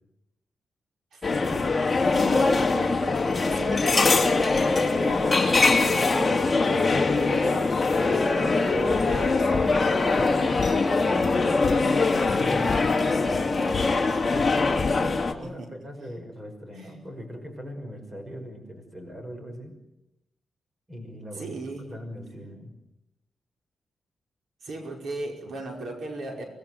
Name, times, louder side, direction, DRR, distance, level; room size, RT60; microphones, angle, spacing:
voice 1, 1.1-7.7 8.4-11.0 15.4-15.7 16.7-16.9 21.3-22.0 24.6-26.4, right 2 dB, 70° right, 2 dB, 5.4 m, -37 dB
sound 1, 1.2-15.3, left 3 dB, 20° left, 2.8 m, -22 dB
voice 2, 7.9-8.3 12.1-13.9 14.3-19.8 20.9-21.6 21.9-22.7, equal, 20° right, 5 dB, 5.7 m, -39 dB
sound 2, 9.1-15.4, left 6 dB, 50° left, 3.1 m, -37 dB
26.0 x 20.0 x 9.3 m, 0.88 s
wide cardioid pair, 145°, 0 cm